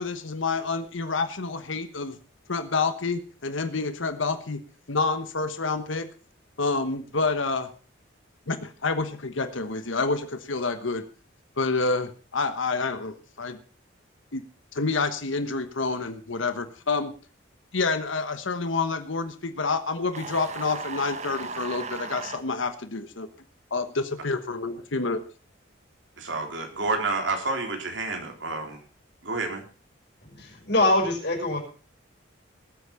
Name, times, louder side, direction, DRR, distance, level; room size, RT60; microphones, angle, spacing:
voice 1, 0.0-2.2 2.5-4.6 4.9-6.1 6.6-7.7 8.5-11.0 11.6-13.6 14.3-14.4 14.7-17.1 17.7-23.3 23.7-25.2, left 3 dB, 75° left, 10 dB, 1.2 m, -28 dB
sound 1, 20.1-22.4, right 4 dB, 35° right, 1.0 m, -36 dB
voice 2, 26.2-28.8 29.2-29.6, right 3 dB, 70° right, 3 dB, 3.6 m, -29 dB
voice 3, 30.2-31.6, left 2 dB, 55° left, 1 dB, 5.8 m, -24 dB
19.0 x 8.4 x 5.7 m, 0.38 s
head